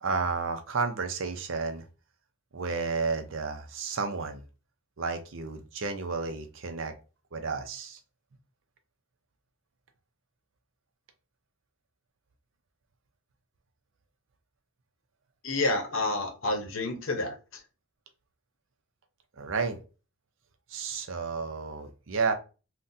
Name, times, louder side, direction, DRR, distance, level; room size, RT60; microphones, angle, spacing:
voice 1, 0.0-1.8 2.5-4.4 5.0-6.9 7.3-8.0 19.4-19.8 20.7-22.3, right 4 dB, 65° right, 0.6 m, -31 dB
voice 2, 15.4-17.3, left 2 dB, 65° left, 0.8 m, -29 dB
3.8 x 2.2 x 2.6 m
head